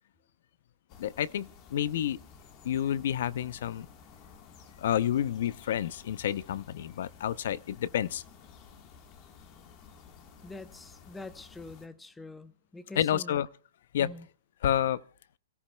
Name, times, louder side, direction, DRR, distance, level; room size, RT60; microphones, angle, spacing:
sound 1, 0.9-11.9, left 6 dB, 30° left, 1.4 m, -54 dB
voice 1, 1.0-2.2 2.6-3.9 4.8-8.2 13.0-13.5 13.9-14.1 14.6-15.0, left 10 dB, 60° left, 0.6 m, -29 dB
voice 2, 10.4-13.4 14.0-14.3, left 2 dB, 5° left, 0.7 m, -45 dB
30.0 x 14.5 x 2.2 m
hypercardioid pair, 155°, 0 cm